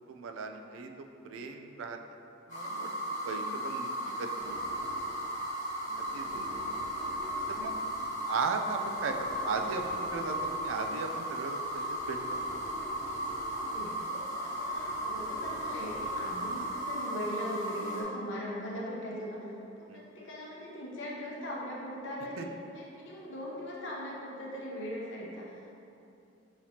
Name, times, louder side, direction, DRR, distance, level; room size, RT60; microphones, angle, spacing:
voice 1, 0.1-2.0 2.5-2.9 3.2-4.6 6.1-6.5 7.5-7.7 8.3-12.4 19.9-20.0 22.4-22.5, right 4 dB, 85° right, 5 dB, 0.4 m, -37 dB
sound 1, 2.5-18.0, right 1 dB, 40° left, 1.2 m, -35 dB
voice 2, 3.1-3.6 5.8-6.7 13.5-19.5 19.8-25.8, equal, 70° left, -4 dB, 0.9 m, -40 dB
sound 2, 4.4-16.9, right 1 dB, 35° right, 0.8 m, -48 dB
5.6 x 3.1 x 2.8 m, 2.7 s
head